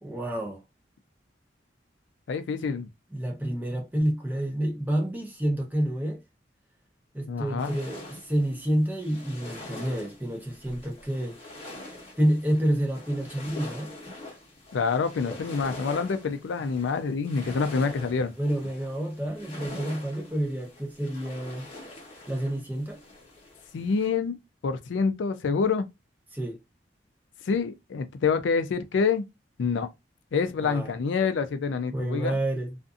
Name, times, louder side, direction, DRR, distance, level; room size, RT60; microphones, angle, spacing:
voice 1, 0.0-0.6 3.1-6.2 7.1-11.4 12.2-13.9 18.4-21.7 22.3-23.0 26.3-26.6 30.6-30.9 31.9-32.8, right 1 dB, 10° right, 0.7 m, -29 dB
voice 2, 2.3-2.9 7.3-7.8 14.7-18.3 23.7-24.4 24.6-25.9 27.5-29.2 29.6-29.9 30.3-32.3, left 5 dB, 85° left, 0.4 m, -27 dB
sound 1, 7.6-24.1, left 1 dB, 35° left, 1.0 m, -44 dB
2.6 x 2.5 x 2.4 m
head